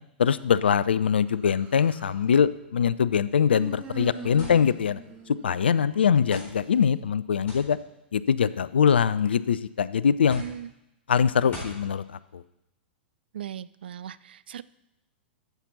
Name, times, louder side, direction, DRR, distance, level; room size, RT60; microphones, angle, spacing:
voice 1, 0.2-5.0 5.3-7.8 8.1-10.4 11.1-12.4, left 7 dB, 70° left, 17 dB, 0.4 m, -23 dB
Human voice, 1.3-2.2 3.4-6.1, right 4 dB, 20° right, 1.8 m, -43 dB
sound 1, 4.4-4.6 5.5-5.6 6.3-6.5 7.5-7.7 8.7-9.1 10.3-10.6 11.5-11.8, left 1 dB, 25° left, 4.1 m, -41 dB
voice 2, 10.4-10.7 11.4-11.6 13.3-14.6, right 9 dB, 60° right, 17 dB, 0.3 m, -38 dB
13.5 x 6.0 x 4.1 m, 0.87 s
figure-of-eight pair, 100°, 6 cm